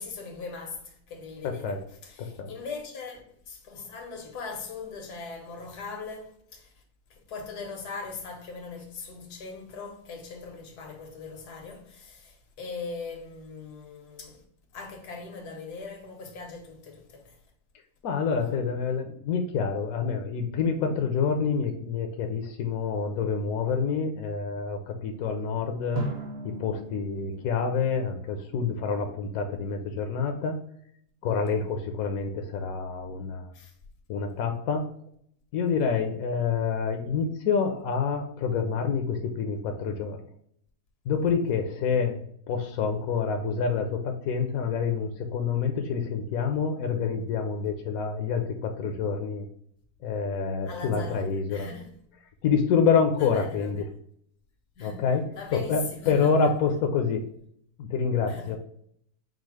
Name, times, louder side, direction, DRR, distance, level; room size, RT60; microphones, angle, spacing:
voice 1, 0.0-1.7 2.0-6.8 7.1-14.4 14.7-17.4 18.4-18.5 33.5-33.7 50.6-51.2 51.5-51.9 53.2-53.9 54.8-55.0 55.4-56.3 58.3-58.6, left 4 dB, 90° left, 1.5 m, -40 dB
voice 2, 1.4-1.8 2.2-2.5 18.0-26.1 26.4-30.6 31.2-33.5 34.1-34.9 35.5-40.2 41.0-49.5 50.0-51.7 52.4-53.8 54.8-57.2 57.8-58.6, left 5 dB, 70° left, 1.0 m, -27 dB
Drum, 25.9-28.8, right 2 dB, 35° right, 0.7 m, -38 dB
5.0 x 2.0 x 4.6 m
omnidirectional pair, 1.6 m